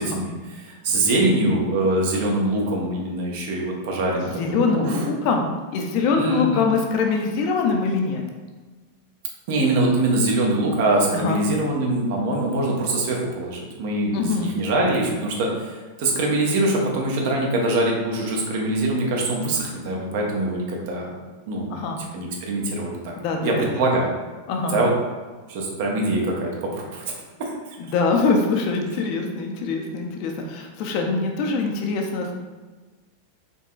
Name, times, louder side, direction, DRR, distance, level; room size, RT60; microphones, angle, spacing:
voice 1, 0.0-4.3 4.6-5.0 6.1-6.7 9.5-21.1 21.5-21.9 22.1-23.1 23.4-24.1 24.7-24.9 25.5-27.0 27.4-27.5, right 2 dB, 50° right, -1 dB, 0.8 m, -23 dB
voice 2, 4.4-5.4 5.7-8.2 11.1-11.4 14.1-14.5 21.7-22.0 23.2-23.7 24.5-24.8 27.8-32.3, left 4 dB, 45° left, 2 dB, 0.5 m, -23 dB
3.9 x 3.6 x 2.3 m, 1.3 s
figure-of-eight pair, 90°, 0 cm